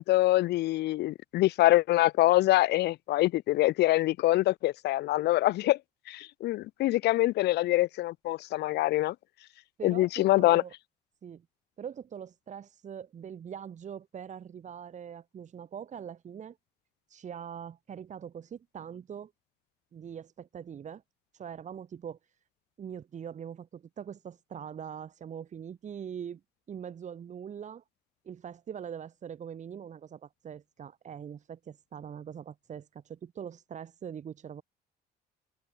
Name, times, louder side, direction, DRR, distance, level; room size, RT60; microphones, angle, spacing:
voice 1, 0.0-5.8 6.1-9.1 9.8-10.6, left 16 dB, 80° left, 3.0 m, -25 dB
voice 2, 9.8-10.7 11.2-11.4 11.8-16.6 17.1-19.3 19.9-21.0 21.3-22.2 22.8-26.4 26.7-27.8 28.2-34.6, right 8 dB, 45° right, 5.1 m, -42 dB
cardioid pair, 110°, 17 cm